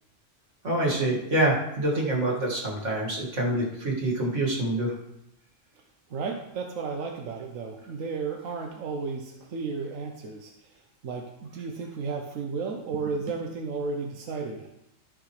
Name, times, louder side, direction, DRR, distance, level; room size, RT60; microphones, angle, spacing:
voice 1, 0.6-4.9, right 1 dB, 65° right, -4 dB, 2.4 m, -26 dB
voice 2, 6.1-10.5 11.0-14.7, right 4 dB, 80° right, 2 dB, 1.2 m, -33 dB
13.5 x 5.7 x 3.3 m, 0.83 s
omnidirectional pair, 1.3 m